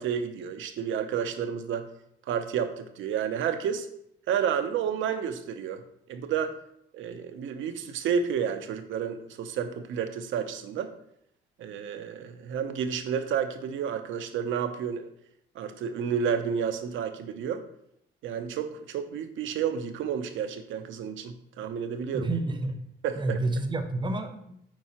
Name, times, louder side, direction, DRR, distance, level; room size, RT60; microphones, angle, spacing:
voice 1, 0.0-1.8 2.3-3.9 4.3-5.8 6.1-6.6 6.9-10.9 11.6-15.1 15.5-17.6 18.2-22.3 23.0-23.4, right 7 dB, 75° right, 8 dB, 0.6 m, -30 dB
voice 2, 22.1-22.8 23.2-24.5, right 2 dB, 25° right, 8 dB, 0.7 m, -29 dB
7.5 x 4.6 x 2.9 m, 0.74 s
cardioid pair, 90°, 20 cm